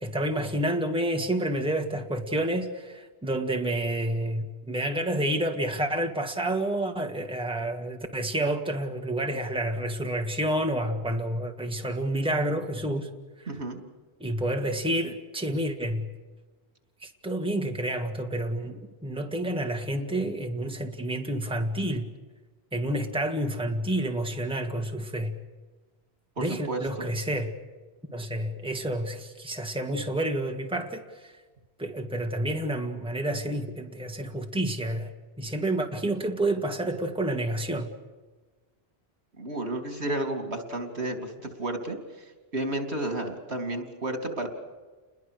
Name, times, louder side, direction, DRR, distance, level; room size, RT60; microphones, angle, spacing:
voice 1, 0.0-13.1 14.2-16.1 17.0-22.1 22.7-25.3 26.4-27.5 28.1-31.3 31.8-35.1 35.4-37.9, right 1 dB, 5° right, 3 dB, 1.7 m, -29 dB
voice 2, 13.5-13.8 26.4-27.1 39.4-41.3 41.6-42.0 42.5-44.5, right 2 dB, 75° right, 6 dB, 3.1 m, -31 dB
29.5 x 21.5 x 6.6 m, 1.3 s
omnidirectional pair, 1.1 m